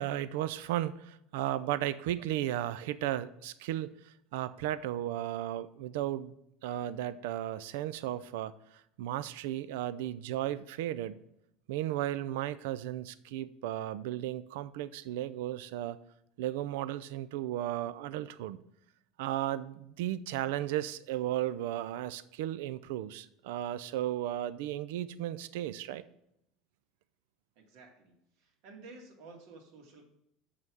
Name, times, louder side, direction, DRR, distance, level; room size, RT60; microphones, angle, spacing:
voice 1, 0.0-6.3 6.6-8.5 9.0-11.2 11.7-16.0 16.4-18.6 19.2-26.0, right 13 dB, 85° right, 16 dB, 0.4 m, -35 dB
voice 2, 27.6-30.1, right 3 dB, 70° right, 2 dB, 1.9 m, -53 dB
6.5 x 5.5 x 6.1 m, 0.80 s
supercardioid pair, 140°, 0 cm